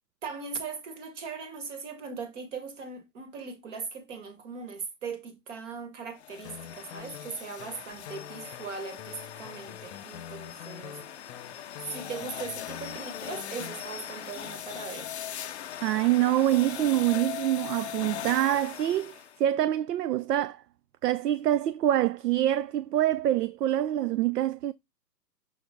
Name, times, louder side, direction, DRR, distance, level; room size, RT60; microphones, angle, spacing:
voice 1, 0.2-11.0 11.3-15.1, right 5 dB, 45° right, 2.1 m, -39 dB
sound 1, 6.2-19.4, left 10 dB, 45° left, 0.5 m, -40 dB
Guitar, 6.4-13.8, left 9 dB, 25° left, 0.9 m, -46 dB
voice 2, 15.8-20.6 21.0-24.7, right 13 dB, 70° right, 0.5 m, -25 dB
6.3 x 4.5 x 3.8 m
hypercardioid pair, 150°, 50 cm